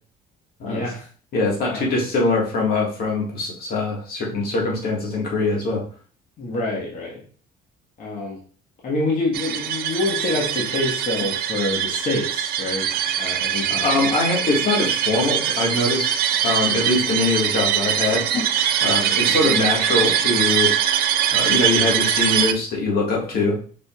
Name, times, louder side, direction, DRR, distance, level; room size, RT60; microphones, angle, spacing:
voice 1, 0.6-1.1 1.7-1.9 6.4-7.2 8.0-8.4 8.8-14.2 18.3-18.4 19.4-19.5, left 2 dB, 50° left, -4 dB, 1.5 m, -27 dB
voice 2, 1.3-5.8 13.7-18.3 18.8-20.8 21.3-23.6, left 2 dB, 65° left, -2 dB, 1.8 m, -22 dB
sound 1, 9.3-22.5, right 10 dB, 65° right, 0.5 m, -22 dB
5.0 x 4.4 x 2.4 m, 0.42 s
cardioid pair, 110°, 17 cm